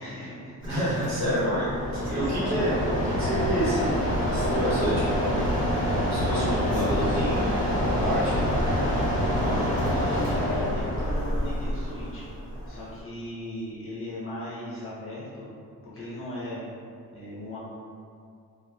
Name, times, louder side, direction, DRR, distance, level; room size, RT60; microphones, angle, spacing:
voice 1, 0.0-1.4 2.2-2.6 9.1-12.2 12.7-15.5 15.9-16.6 17.1-17.6, left 1 dB, 35° left, -9 dB, 0.7 m, -38 dB
Mechanisms, 0.6-13.0, equal, 20° left, 1.2 m, -27 dB
voice 2, 0.6-4.0 4.3-5.5 6.0-8.4 9.4-9.6 10.0-10.2, right 1 dB, 50° right, -10 dB, 1.0 m, -29 dB
sound 1, 1.7-6.0, equal, 25° right, 0.6 m, -45 dB
2.7 x 2.0 x 2.3 m, 2.3 s
wide cardioid pair, 160°, 36 cm